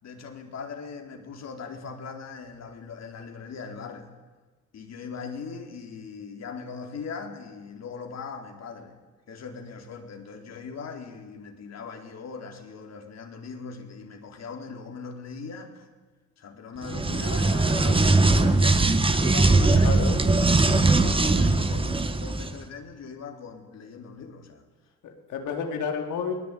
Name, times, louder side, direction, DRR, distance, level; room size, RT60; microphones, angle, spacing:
voice 1, 0.0-4.1 4.7-8.9 9.3-15.9 16.4-20.0 20.6-24.6, left 5 dB, 60° left, 4 dB, 4.2 m, -40 dB
sound 1, 16.8-22.5, right 3 dB, 15° right, 1.8 m, -21 dB
voice 2, 19.7-20.2 25.0-26.4, left 6 dB, 80° left, 3 dB, 4.3 m, -30 dB
23.5 x 19.5 x 9.3 m, 1.3 s
cardioid pair, 90°, 30 cm